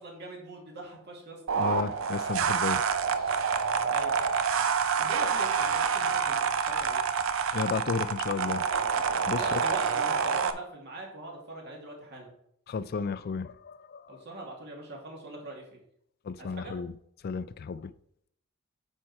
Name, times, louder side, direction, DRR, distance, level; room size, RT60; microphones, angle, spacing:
voice 1, 0.0-1.4 3.9-4.2 5.0-7.1 9.4-12.3 14.1-15.8 16.4-16.7, right 1 dB, 50° right, -1 dB, 2.4 m, -42 dB
sound 1, 1.5-10.5, right 6 dB, 70° right, 0.5 m, -27 dB
voice 2, 1.6-2.8 7.5-8.7 9.3-9.6 12.7-14.2 16.2-17.0 17.2-17.9, left 5 dB, 45° left, 16 dB, 0.3 m, -33 dB
8.6 x 4.5 x 4.7 m, 0.71 s
head